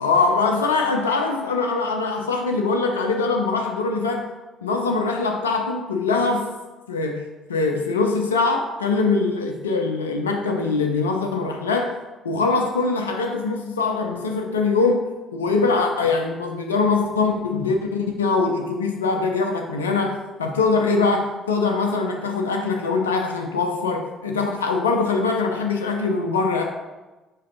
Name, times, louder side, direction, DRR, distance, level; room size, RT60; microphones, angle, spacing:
voice 1, 0.0-4.3 4.6-6.5 6.9-11.9 12.2-15.0 15.3-26.6, left 4 dB, 80° left, 3 dB, 0.4 m, -22 dB
4.9 x 4.6 x 4.3 m, 1.1 s
figure-of-eight pair, 50°, 0 cm